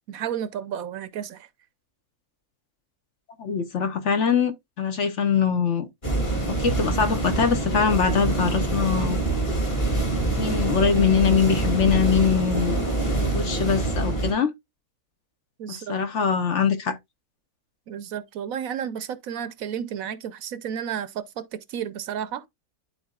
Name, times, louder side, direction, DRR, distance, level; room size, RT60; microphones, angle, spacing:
voice 1, 0.1-1.4 15.6-16.0 17.9-22.5, right 9 dB, 70° right, 1.0 m, -32 dB
voice 2, 3.4-5.9 6.5-9.2 10.4-12.9 13.3-14.5 15.7-17.0, left 6 dB, 55° left, 1.1 m, -23 dB
sound 1, 6.0-14.3, right 2 dB, 30° left, 2.4 m, -25 dB
11.5 x 3.9 x 2.3 m
omnidirectional pair, 1.6 m